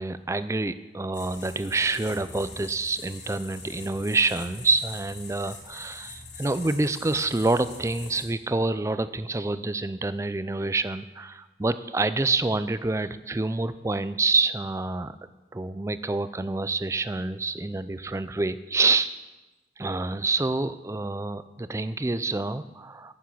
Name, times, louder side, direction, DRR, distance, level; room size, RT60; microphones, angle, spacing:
voice 1, 0.0-15.2 15.5-19.1 19.8-23.1, right 3 dB, 15° right, 13 dB, 0.4 m, -27 dB
sound 1, 1.1-8.3, left 4 dB, 65° left, 2.5 m, -43 dB
11.5 x 7.2 x 8.4 m, 1.1 s
head